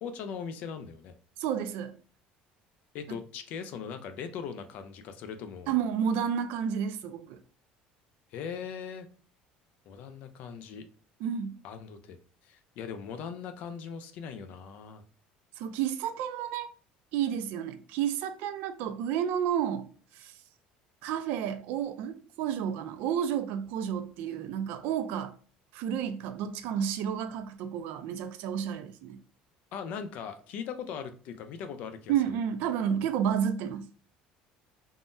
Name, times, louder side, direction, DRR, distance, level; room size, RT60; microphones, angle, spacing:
voice 1, 0.0-1.1 2.9-5.7 8.3-9.1 9.9-10.9 11.6-12.2 12.4-15.0 29.7-32.4, left 7 dB, 50° left, 0.4 m, -40 dB
voice 2, 1.4-2.0 5.7-7.4 11.2-11.6 15.6-16.7 17.1-19.9 20.2-20.3 21.0-25.3 25.7-29.2 32.1-33.9, right 8 dB, 65° right, 0.4 m, -31 dB
3.6 x 2.1 x 2.6 m
cardioid pair, 165°, 3 cm